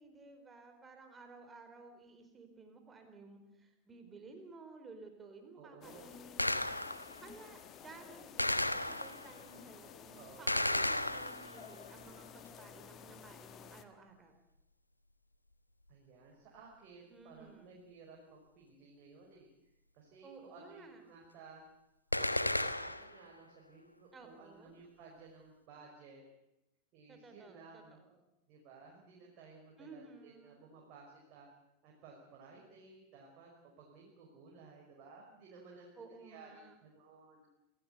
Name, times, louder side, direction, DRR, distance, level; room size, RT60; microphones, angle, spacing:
voice 1, 0.0-6.7 7.2-14.3 17.1-17.8 20.2-21.0 24.1-24.8 27.1-28.2 29.8-30.6 36.0-36.7, right 4 dB, 15° right, 6 dB, 4.6 m, -55 dB
voice 2, 5.6-6.3 10.1-10.7 15.9-19.5 19.9-21.6 22.1-26.2 26.9-28.0 28.5-31.5 31.8-33.5 33.8-37.5, right 4 dB, 40° right, -1 dB, 5.3 m, -56 dB
sound 1, 5.8-13.8, left 8 dB, 30° left, 1.7 m, -53 dB
Gunshot gunfire, 6.4-7.2 8.4-9.4 10.5-11.7 22.1-23.2, left 1 dB, 85° left, 1.2 m, -34 dB
27.0 x 16.5 x 8.2 m, 0.87 s
figure-of-eight pair, 90°, 0 cm